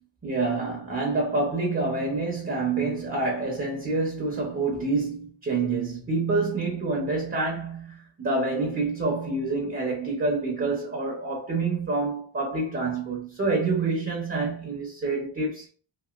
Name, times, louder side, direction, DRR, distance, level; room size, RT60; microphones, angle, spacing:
voice 1, 0.2-15.7, right 3 dB, 30° right, 0.7 m, -27 dB
3.0 x 2.7 x 2.3 m
wide cardioid pair, 115°, 42 cm